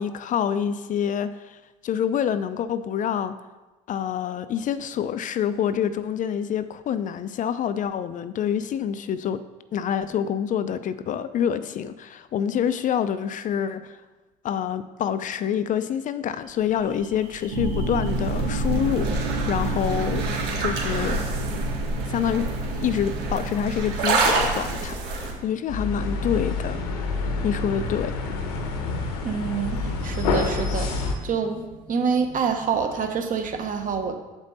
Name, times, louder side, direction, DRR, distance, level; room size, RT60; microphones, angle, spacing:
voice 1, 0.0-3.4 3.9-9.4 9.7-14.0 14.4-20.3 20.6-21.2 22.1-26.8 27.4-28.1, left 8 dB, 45° left, 12 dB, 0.5 m, -27 dB
sound 1, 16.6-25.3, right 3 dB, 65° right, 1.9 m, -28 dB
sound 2, 17.5-24.7, right 2 dB, 85° right, 1.5 m, -30 dB
sound 3, 25.7-31.2, left 3 dB, 85° left, 1.1 m, -27 dB
voice 2, 29.0-34.1, right 6 dB, 45° right, 5 dB, 1.2 m, -27 dB
7.1 x 5.4 x 4.0 m, 1.2 s
hypercardioid pair, 70°, 19 cm